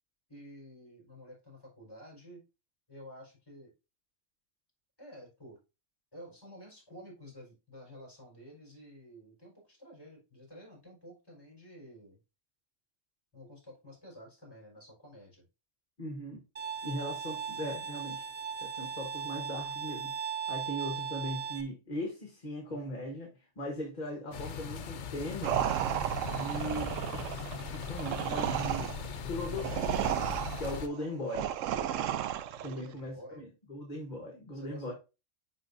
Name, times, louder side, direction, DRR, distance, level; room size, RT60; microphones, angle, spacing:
voice 1, 0.3-2.4 2.9-3.7 5.0-5.6 6.1-12.2 13.3-15.4 32.6-33.4 34.5-34.9, equal, 20° left, -2 dB, 4.2 m, -51 dB
voice 2, 16.0-16.4 16.8-18.3 18.6-25.6 26.2-28.9 29.2-30.0 30.6-31.5 32.6-34.9, equal, 35° left, 2 dB, 1.3 m, -39 dB
Bowed string instrument, 16.6-21.6, right 7 dB, 35° right, 0.8 m, -38 dB
sound 1, 24.3-30.9, left 6 dB, 65° left, 1.0 m, -39 dB
sound 2, 25.4-32.8, right 11 dB, 80° right, 0.9 m, -33 dB
10.0 x 3.9 x 2.6 m, 0.28 s
omnidirectional pair, 1.3 m